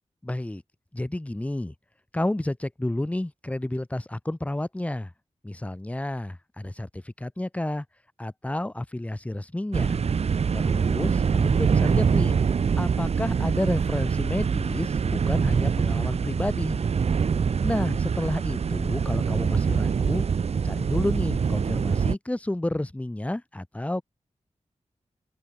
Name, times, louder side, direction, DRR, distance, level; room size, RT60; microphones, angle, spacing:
voice 1, 0.2-0.6 0.9-1.7 2.1-5.1 5.4-7.9 8.2-10.0 10.5-12.4 12.8-16.8 17.6-20.2 20.6-24.0, left 1 dB, 10° left, 2.1 m, -30 dB
sound 1, 9.7-22.1, right 6 dB, 60° right, 0.9 m, -24 dB
open air
wide cardioid pair, 145°, 12 cm